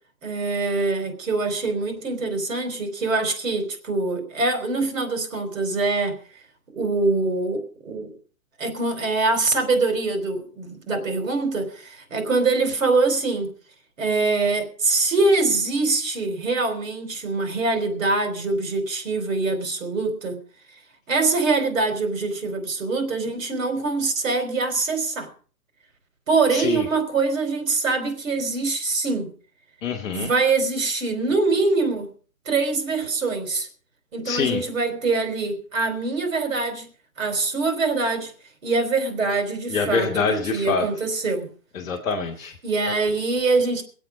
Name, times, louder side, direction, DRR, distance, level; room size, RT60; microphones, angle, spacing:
voice 1, 0.2-6.2 6.7-8.1 8.6-13.5 14.0-20.4 21.1-25.3 26.3-29.3 30.1-32.1 32.5-33.7 34.1-36.9 37.2-38.3 38.6-40.2 40.5-41.5 42.6-43.8, right 3 dB, 65° right, 4.2 m, -24 dB
voice 2, 26.5-26.8 29.8-30.3 34.2-34.6 39.7-40.9 41.7-42.5, left 5 dB, 5° left, 0.6 m, -25 dB
23.5 x 8.3 x 5.2 m
hypercardioid pair, 170°, 43 cm